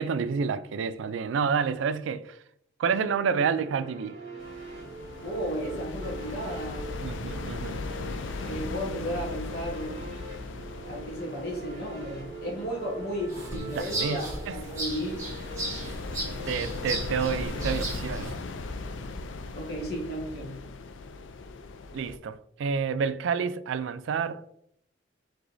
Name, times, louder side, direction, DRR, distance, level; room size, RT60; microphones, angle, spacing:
voice 1, 0.0-2.4 2.8-4.2 7.0-7.8 13.5-14.2 14.5-14.6 16.5-18.3 21.9-24.4, right 6 dB, 80° right, 0.3 m, -29 dB
sound 1, 3.0-17.7, right 1 dB, 35° right, 1.6 m, -43 dB
sound 2, 4.4-22.2, left 3 dB, 75° left, 0.4 m, -38 dB
voice 2, 5.2-6.9 8.4-10.1 10.8-15.2 19.5-20.6, equal, 55° left, 1.4 m, -34 dB
sound 3, 13.3-18.3, right 1 dB, 15° right, 1.4 m, -36 dB
4.9 x 3.8 x 2.6 m
head